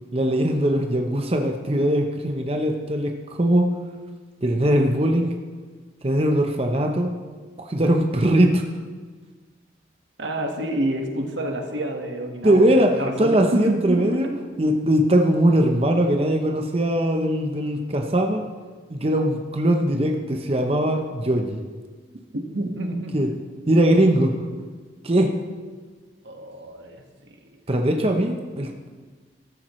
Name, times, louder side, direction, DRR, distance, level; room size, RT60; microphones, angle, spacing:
voice 1, 0.1-3.7 4.4-5.3 6.0-7.1 7.6-8.6 12.4-14.3 14.6-18.4 18.9-21.6 23.1-23.3 23.7-24.3 25.0-25.3 27.7-28.9, right 1 dB, 35° right, 4 dB, 0.8 m, -20 dB
voice 2, 10.2-12.6 13.0-14.0 22.3-23.2 26.2-27.4, right 1 dB, 90° right, 3 dB, 1.7 m, -28 dB
14.0 x 13.0 x 3.2 m, 1.5 s
head